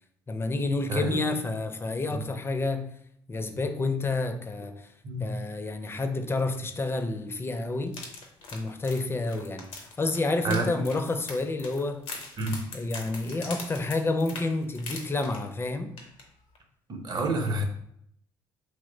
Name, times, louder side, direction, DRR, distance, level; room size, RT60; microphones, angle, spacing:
voice 1, 0.3-2.9 3.3-4.9 5.2-8.0 8.5-12.0 12.7-15.9, left 2 dB, 25° left, 0.4 m, -29 dB
voice 2, 0.9-1.2 2.1-2.2 5.0-5.3 10.4-10.7 12.4-12.6 16.9-17.6, right 2 dB, 45° right, 0.7 m, -28 dB
sound 1, 7.9-15.7 16.0-16.2 16.6-16.7, left 3 dB, 75° left, 0.6 m, -42 dB
2.9 x 2.0 x 3.8 m
supercardioid pair, 60°, 10 cm